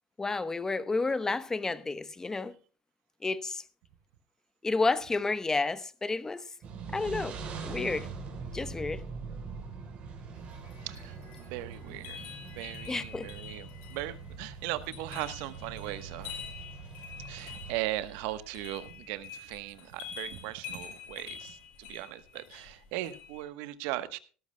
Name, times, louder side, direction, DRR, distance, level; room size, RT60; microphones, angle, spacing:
voice 1, 0.2-2.5 3.2-3.6 4.6-6.4 6.9-7.4 7.6-8.1 8.5-9.0 12.9-13.3, left 3 dB, 15° left, 1.0 m, -30 dB
sound 1, 6.6-17.7, right 4 dB, 50° right, 4.1 m, -43 dB
sound 2, 10.4-23.4, left 6 dB, 70° left, 6.0 m, -47 dB
voice 2, 10.8-12.3 12.6-16.3 17.2-24.2, right 15 dB, 70° right, 1.1 m, -38 dB
17.5 x 13.5 x 2.2 m
supercardioid pair, 95°, 3 cm